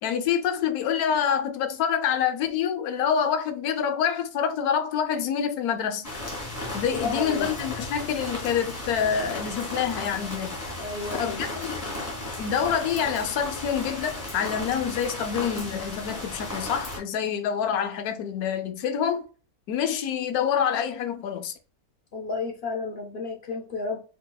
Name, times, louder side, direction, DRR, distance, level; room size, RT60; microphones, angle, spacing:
voice 1, 0.0-6.1 6.7-10.6 11.2-11.8 12.4-19.3 19.7-21.5, left 8 dB, 85° left, 1.1 m, -27 dB
sound 1, 6.0-17.0, left 1 dB, 10° left, 1.4 m, -35 dB
voice 2, 6.9-7.5 10.8-11.5 22.1-24.0, left 4 dB, 55° left, 0.8 m, -32 dB
5.0 x 2.8 x 2.3 m
omnidirectional pair, 1.5 m